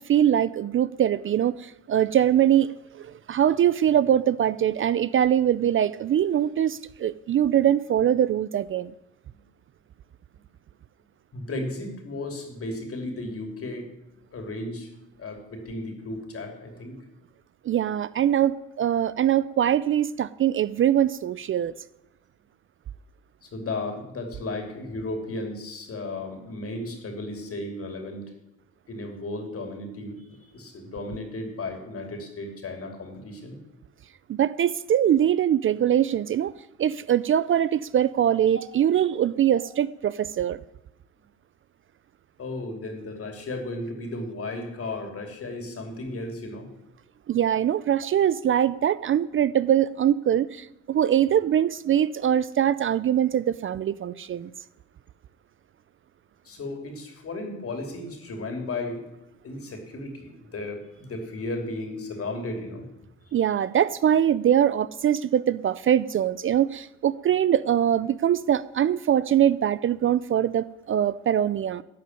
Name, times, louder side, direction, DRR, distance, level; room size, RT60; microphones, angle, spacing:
voice 1, 0.0-8.9 17.7-21.7 34.3-36.5 36.8-40.6 47.3-54.5 63.3-71.8, right 10 dB, 45° right, 0.4 m, -23 dB
voice 2, 11.3-13.9 14.3-14.9 15.2-17.0 23.4-28.3 28.9-33.6 42.4-46.7 56.4-59.1 59.4-62.9, left 2 dB, 50° left, 3.1 m, -34 dB
12.0 x 6.3 x 9.5 m
cardioid pair, 90°, 30 cm